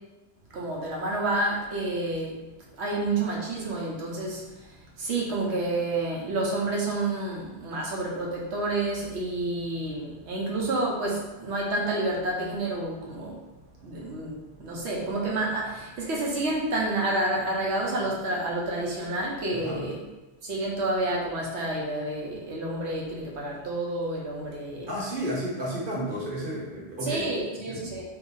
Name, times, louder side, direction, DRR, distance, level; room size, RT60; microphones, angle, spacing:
voice 1, 0.5-2.4 2.8-4.4 5.0-13.4 13.8-20.1 20.4-24.9 27.0-28.0, right 2 dB, 80° right, -3 dB, 1.1 m, -29 dB
voice 2, 19.5-19.9 24.9-27.2 27.5-27.9, right 1 dB, 55° right, -5 dB, 1.1 m, -32 dB
2.9 x 2.5 x 3.7 m, 1.2 s
omnidirectional pair, 1.1 m